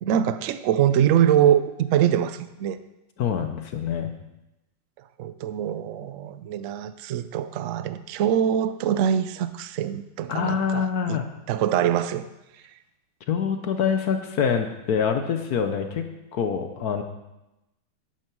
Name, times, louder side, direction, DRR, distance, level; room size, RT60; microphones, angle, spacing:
voice 1, 0.0-2.8 5.2-11.2 11.5-12.3, right 10 dB, 75° right, 13 dB, 0.7 m, -23 dB
voice 2, 3.2-4.1 10.3-11.3 13.3-17.0, left 7 dB, 60° left, 7 dB, 1.2 m, -25 dB
11.5 x 9.2 x 4.7 m, 0.96 s
omnidirectional pair, 2.0 m